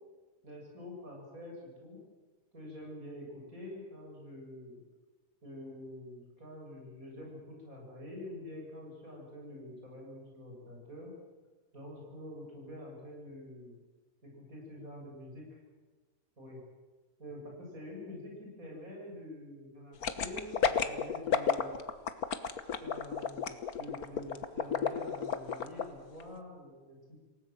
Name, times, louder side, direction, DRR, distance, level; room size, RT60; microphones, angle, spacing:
voice 1, 0.4-2.0 2.5-4.8 5.4-11.1 11.7-13.7 14.2-15.6 16.4-16.6 17.2-21.7 22.8-27.2, left 1 dB, 70° right, -2 dB, 8.1 m, -47 dB
sound 1, 20.0-25.8 26.2-26.3, left 7 dB, 85° left, 1.7 m, -31 dB
28.0 x 17.5 x 7.7 m, 1.3 s
omnidirectional pair, 1.5 m